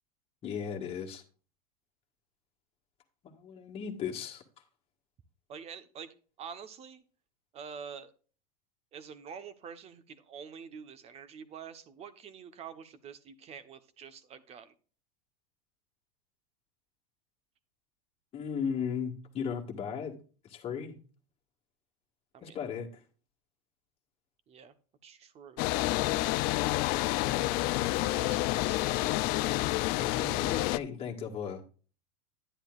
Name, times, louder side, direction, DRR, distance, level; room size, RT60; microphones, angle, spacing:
voice 1, 0.4-1.2 3.2-4.4 18.3-20.2 20.5-21.0 22.4-22.9 29.9-31.7, left 7 dB, 30° left, 0 dB, 1.7 m, -36 dB
voice 2, 5.5-7.0 7.5-8.1 8.9-14.7 22.3-22.6 24.5-24.7 25.0-25.7 28.0-29.3, right 7 dB, 30° right, 12 dB, 1.1 m, -47 dB
sound 1, 25.6-30.8, left 18 dB, 45° left, 0.4 m, -29 dB
10.0 x 10.0 x 2.5 m, 0.38 s
supercardioid pair, 135°, 20 cm